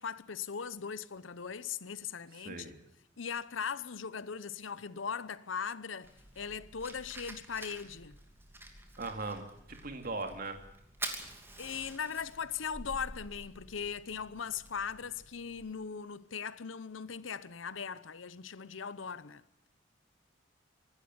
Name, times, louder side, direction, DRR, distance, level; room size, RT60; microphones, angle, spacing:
voice 1, 0.0-2.7 3.2-8.2 11.6-19.4, left 6 dB, 90° left, 0.8 m, -39 dB
voice 2, 2.4-2.8 9.0-9.4 9.7-10.6, right 3 dB, 50° right, 2.5 m, -38 dB
Fire, 6.0-15.7, right 2 dB, 10° right, 2.8 m, -48 dB
25.0 x 12.5 x 9.6 m
head